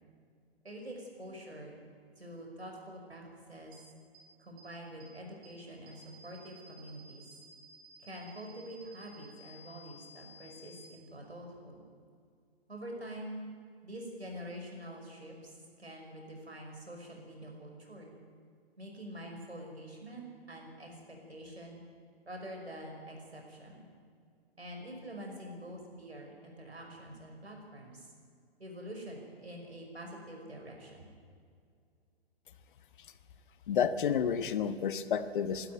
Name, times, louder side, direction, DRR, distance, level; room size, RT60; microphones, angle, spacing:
voice 1, 0.6-1.9 2.2-3.7 4.4-7.3 8.0-11.8 12.7-13.4 13.8-18.2 18.8-21.8 22.3-23.9 24.6-28.1 28.6-31.1, equal, 90° right, 1 dB, 5.6 m, -46 dB
sound 1, 3.7-3.8 4.1-4.2 4.6-4.7 5.0-5.1 5.4-5.5 5.9-10.9, left 2 dB, 40° right, 5.6 m, -56 dB
voice 2, 33.7-35.7, left 7 dB, 55° left, 12 dB, 1.2 m, -30 dB
22.5 x 12.5 x 9.6 m, 2.2 s
figure-of-eight pair, 120°, 31 cm